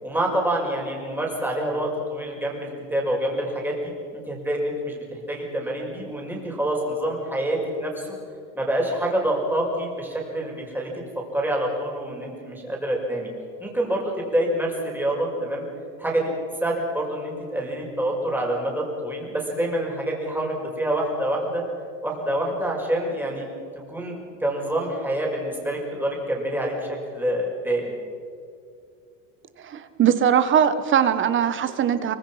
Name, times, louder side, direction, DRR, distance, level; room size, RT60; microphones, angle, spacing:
voice 1, 0.0-8.1 8.5-10.9 11.3-13.3 13.6-15.7 16.0-21.7 22.0-23.5 23.9-27.9, right 1 dB, 5° right, -1 dB, 6.0 m, -27 dB
voice 2, 29.6-32.2, right 8 dB, 30° right, 12 dB, 1.6 m, -20 dB
24.5 x 24.5 x 5.9 m, 2.4 s
supercardioid pair, 135°, 38 cm